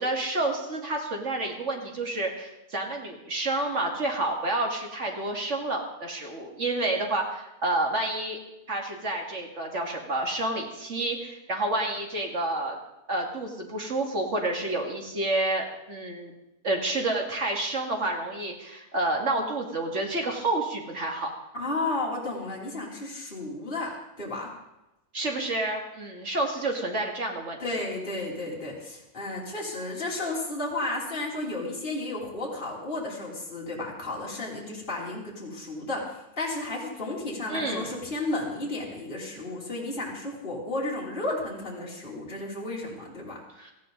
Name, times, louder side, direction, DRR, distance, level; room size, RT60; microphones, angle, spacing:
voice 1, 0.0-8.4 8.7-12.8 13.1-16.3 16.6-21.3 25.1-27.6 37.5-38.0 43.6-43.7, right 2 dB, 50° right, 1 dB, 2.4 m, -29 dB
voice 2, 21.5-24.5 27.6-43.4, left 2 dB, 35° left, -4 dB, 3.3 m, -33 dB
17.5 x 14.5 x 3.9 m, 0.93 s
omnidirectional pair, 1.6 m